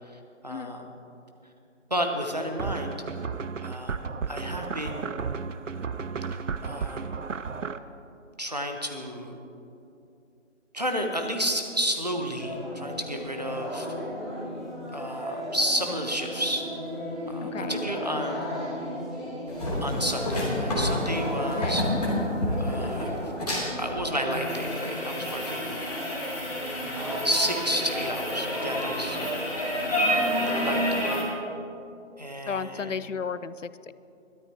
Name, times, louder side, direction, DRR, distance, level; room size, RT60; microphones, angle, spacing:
voice 1, 0.1-0.9 1.9-2.9 3.6-5.1 6.6-7.2 8.4-9.4 10.7-13.9 14.9-16.7 17.3-18.5 19.8-21.8 22.6-23.1 23.8-25.7 26.9-29.2 30.1-31.1 32.2-33.0, equal, 30° right, 3 dB, 1.0 m, -31 dB
sound 1, 2.6-7.8, right 5 dB, 75° right, 0.7 m, -33 dB
sound 2, 12.4-30.8, equal, ahead, 0.8 m, -35 dB
voice 2, 17.4-17.8 21.6-21.8 30.1-30.4 32.5-33.9, left 6 dB, 70° left, 16 dB, 0.6 m, -34 dB
sound 3, 19.5-31.2, left 1 dB, 30° left, 3.3 m, -29 dB
22.0 x 13.0 x 3.0 m, 2.7 s
figure-of-eight pair, 180°, 39 cm